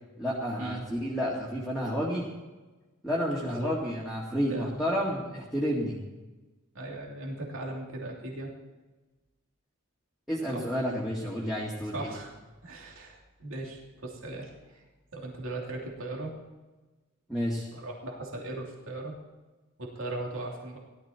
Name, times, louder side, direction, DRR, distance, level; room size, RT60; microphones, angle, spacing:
voice 1, 0.2-2.2 3.0-6.0 10.3-12.1 17.3-17.7, equal, ahead, -7 dB, 2.2 m, -30 dB
voice 2, 3.4-3.7 4.5-4.8 6.7-8.5 10.5-10.7 11.9-12.3 12.6-14.8 15.1-16.4 17.7-19.1 19.8-20.8, right 2 dB, 65° right, -1 dB, 2.9 m, -38 dB
17.0 x 12.5 x 4.5 m, 1.2 s
head